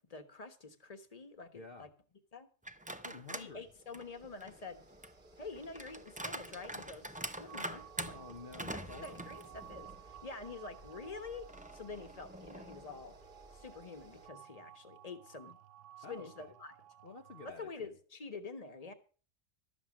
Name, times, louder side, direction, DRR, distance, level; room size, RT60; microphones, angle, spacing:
voice 1, 0.1-1.9 2.3-2.5 3.3-4.8 5.4-8.2 8.7-11.5 11.7-13.2 13.5-15.6 16.0-16.7 17.4-18.9, left 4 dB, 30° left, 10 dB, 1.3 m, -47 dB
voice 2, 1.5-1.9 3.0-3.7 8.1-9.2 16.0-16.5 17.0-17.9, left 3 dB, 50° left, 4 dB, 1.0 m, -50 dB
sound 1, 2.6-3.5 3.9-10.0 10.4-10.5 11.5-13.0, right 1 dB, 10° right, 0.5 m, -45 dB
sound 2, 2.7-14.3, right 1 dB, 30° right, 1.3 m, -59 dB
sound 3, 7.5-17.5, right 11 dB, 70° right, 1.1 m, -56 dB
13.0 x 7.2 x 7.3 m, 0.39 s
omnidirectional pair, 1.3 m